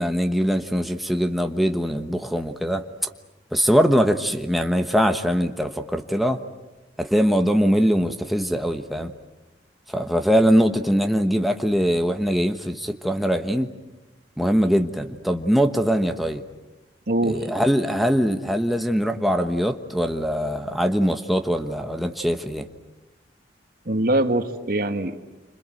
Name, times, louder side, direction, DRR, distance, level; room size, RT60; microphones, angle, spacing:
voice 1, 0.0-2.8 3.5-6.4 7.0-9.1 9.9-13.7 14.4-16.4 17.2-22.7, equal, ahead, 5 dB, 1.2 m, -22 dB
voice 2, 17.1-17.5 23.9-25.3, right 1 dB, 55° right, 7 dB, 1.8 m, -23 dB
29.0 x 26.0 x 7.8 m, 1.1 s
head